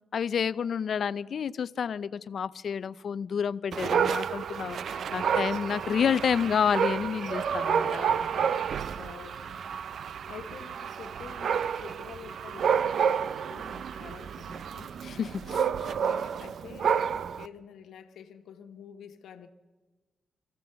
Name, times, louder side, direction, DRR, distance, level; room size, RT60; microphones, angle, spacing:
voice 1, 0.1-8.6 15.0-15.7, left 7 dB, 60° left, 17 dB, 0.6 m, -30 dB
Dog, 3.7-17.5, right 7 dB, 65° right, 0.6 m, -30 dB
voice 2, 9.0-9.8 10.3-14.9 15.4-17.1 17.4-19.5, left 7 dB, 90° left, 7 dB, 1.5 m, -48 dB
26.0 x 15.0 x 6.9 m, 1.3 s
cardioid pair, 120°, 0 cm